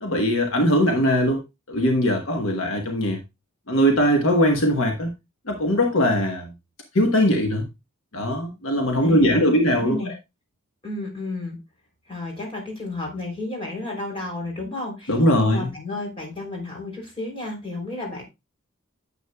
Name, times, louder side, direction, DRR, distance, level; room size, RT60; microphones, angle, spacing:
voice 1, 0.0-1.4 1.7-3.2 3.7-5.1 5.5-6.5 6.9-7.7 8.1-10.1 15.1-15.7, equal, 70° left, 1.3 m, -20 dB
voice 2, 9.0-10.1 10.8-11.6 12.1-18.2, left 2 dB, 25° left, 3.4 m, -32 dB
9.5 x 7.6 x 2.3 m
head